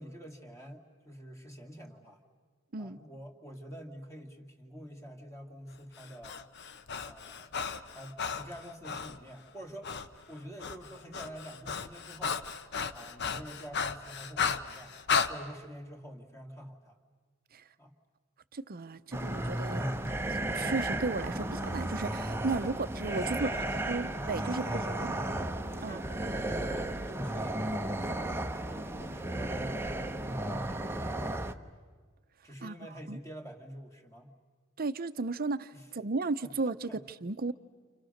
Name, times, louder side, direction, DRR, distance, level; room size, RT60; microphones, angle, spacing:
voice 1, 0.0-2.2 2.8-6.4 7.0-7.6 7.9-9.9 10.3-12.4 12.9-14.9 15.3-17.0 17.8-18.0 22.6-22.8 23.1-24.1 24.4-25.4 25.7-26.1 26.4-31.6 32.4-34.3 35.7-35.9 36.4-37.0, equal, 15° left, 3 dB, 2.3 m, -47 dB
Breathing, 6.0-9.2 9.8-10.1 10.4-15.3, left 6 dB, 55° left, 0.9 m, -34 dB
voice 2, 18.5-19.8 20.3-22.7 23.0-23.5 23.9-25.1 25.8-26.0 32.6-32.7 33.1-33.2 34.8-37.5, right 3 dB, 45° right, 12 dB, 0.7 m, -34 dB
sound 1, 19.1-31.5, right 1 dB, 10° right, 0.8 m, -34 dB
29.5 x 28.0 x 6.5 m, 1.5 s
head